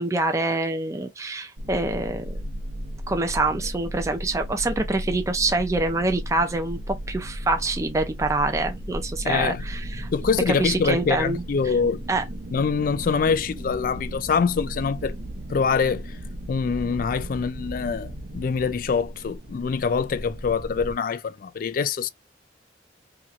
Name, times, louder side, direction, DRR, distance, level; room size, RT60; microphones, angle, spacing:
voice 1, 0.0-2.4 3.1-10.1 10.5-11.7 12.1-12.2, right 2 dB, 15° right, 0.4 m, -26 dB
sound 1, 1.6-20.9, equal, 75° right, 0.7 m, -35 dB
voice 2, 9.2-9.6 10.1-12.0 12.5-15.2 15.5-16.1 16.5-22.1, left 5 dB, 50° left, 0.3 m, -24 dB
2.9 x 2.8 x 2.4 m
head